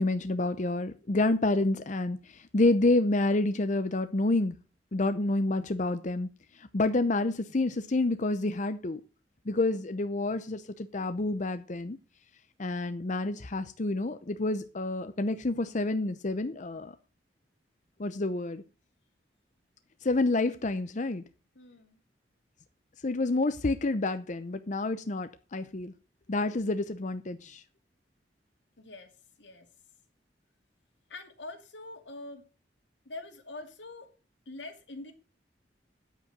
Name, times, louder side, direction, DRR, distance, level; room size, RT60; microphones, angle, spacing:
voice 1, 0.0-4.6 4.9-6.3 6.5-9.0 9.5-12.0 12.6-17.0 18.0-18.6 20.0-21.2 23.0-25.9 26.3-27.6, left 2 dB, 45° left, 0.7 m, -28 dB
voice 2, 21.6-22.0 28.8-29.7 31.1-32.4 33.1-34.1 34.5-35.1, left 2 dB, 85° left, 2.4 m, -44 dB
9.9 x 8.3 x 6.5 m
head